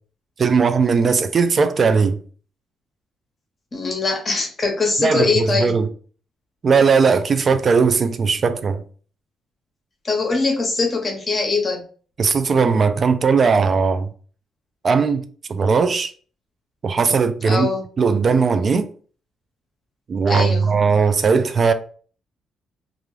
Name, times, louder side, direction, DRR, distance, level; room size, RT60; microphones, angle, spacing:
voice 1, 0.4-2.2 5.0-5.9 6.6-8.8 12.2-14.1 14.8-15.2 15.5-16.1 16.8-17.7 18.0-18.9 20.1-21.7, right 5 dB, 45° right, 0.4 m, -18 dB
voice 2, 3.7-5.7 10.0-11.8 17.4-17.8 20.3-20.7, left 4 dB, 35° left, 0.9 m, -22 dB
2.5 x 2.3 x 3.1 m
cardioid pair, 90°, 0 cm